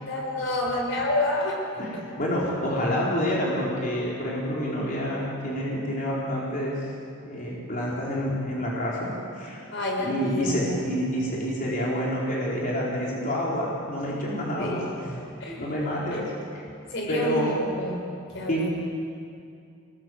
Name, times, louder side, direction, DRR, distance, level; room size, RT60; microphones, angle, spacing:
voice 1, 0.0-1.6 1.9-2.0 9.7-11.0 14.6-15.7 16.1-16.3 16.9-18.0 18.3-18.7, left 1 dB, 60° left, 0 dB, 5.1 m, -29 dB
voice 2, 1.8-6.9 7.2-9.6 10.0-15.1 15.6-16.3 17.1-17.6 18.5-18.7, equal, 40° left, -5 dB, 4.5 m, -28 dB
26.0 x 20.0 x 7.9 m, 2.4 s
head